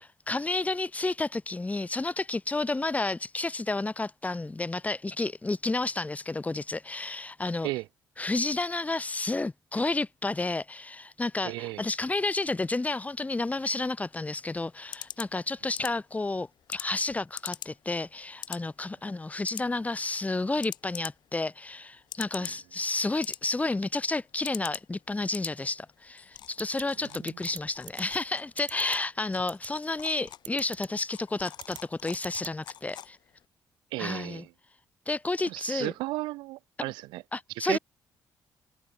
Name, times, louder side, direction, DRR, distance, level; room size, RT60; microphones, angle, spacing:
voice 1, 0.0-7.7 8.2-33.2 34.0-34.4 35.1-35.9 36.8-36.9 37.3-37.8, left 2 dB, 20° left, 1.2 m, -31 dB
voice 2, 11.4-11.8 22.4-22.5 33.9-34.5 35.5-37.2 37.6-37.8, right 20 dB, 90° right, 0.7 m, -34 dB
sound 1, 14.1-33.5, left 11 dB, 70° left, 1.2 m, -46 dB
sound 2, 26.6-26.8 27.1-27.6 27.9-28.0 28.6-29.0 29.5-29.7 30.4-30.9 31.6-31.8 32.1-32.5, right 10 dB, 65° right, 1.7 m, -40 dB
supercardioid pair, 65°, 8 cm